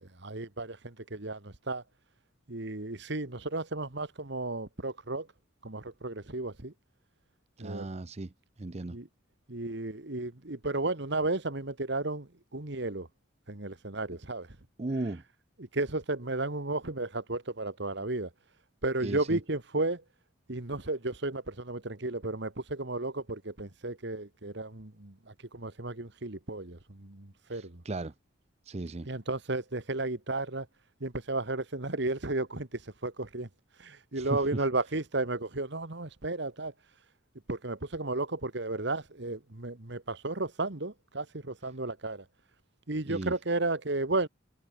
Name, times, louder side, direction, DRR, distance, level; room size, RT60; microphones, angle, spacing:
voice 1, 0.0-1.8 2.5-5.3 5.6-6.7 7.6-7.9 8.9-9.1 9.5-13.1 13.5-14.5 15.6-18.3 18.8-20.0 20.5-27.8 29.1-30.7 31.0-33.5 33.8-36.7 37.5-42.3 42.9-44.3, right 2 dB, 60° right, 1.7 m, -33 dB
voice 2, 7.6-9.0 14.8-15.2 19.0-19.4 27.5-28.1 28.6-29.1 34.1-34.7 43.1-43.3, right 2 dB, 30° right, 0.6 m, -36 dB
head